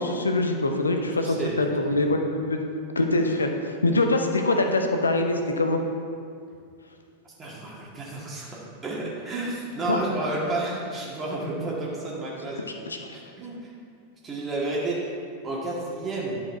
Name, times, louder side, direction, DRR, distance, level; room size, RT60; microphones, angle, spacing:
voice 1, 0.0-2.6 3.0-5.8 9.9-10.0 12.6-13.0, left 2 dB, 75° left, 5 dB, 0.7 m, -24 dB
voice 2, 1.2-1.8 7.4-8.6 8.8-12.6 13.1-13.7 14.2-15.0 15.4-16.4, right 2 dB, 20° right, -5 dB, 1.9 m, -31 dB
10.5 x 5.0 x 4.5 m, 2.3 s
figure-of-eight pair, 90°, 0 cm